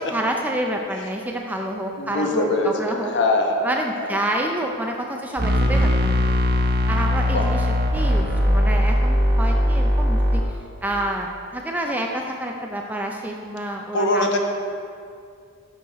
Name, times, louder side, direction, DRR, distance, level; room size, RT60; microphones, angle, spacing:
voice 1, 0.1-3.1 3.6-6.2 6.9-14.3, right 1 dB, 10° right, 1 dB, 0.4 m, -28 dB
voice 2, 2.0-4.2 7.3-7.4 13.9-14.4, left 2 dB, 60° left, 2 dB, 1.0 m, -22 dB
sound 1, 5.4-10.4, equal, 45° right, 0.9 m, -19 dB
10.0 x 6.4 x 4.0 m, 2.4 s
head